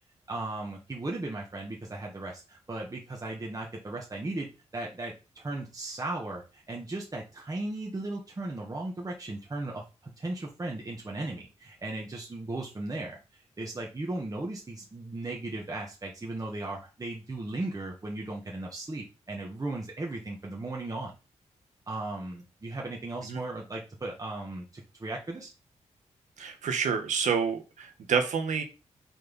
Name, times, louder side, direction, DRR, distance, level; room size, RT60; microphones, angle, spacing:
voice 1, 0.3-13.2 13.6-21.1 21.9-25.5, right 2 dB, 30° right, -2 dB, 1.7 m, -36 dB
voice 2, 26.4-28.6, right 6 dB, 85° right, 6 dB, 1.4 m, -28 dB
6.1 x 4.4 x 5.4 m, 0.30 s
cardioid pair, 85°, 12 cm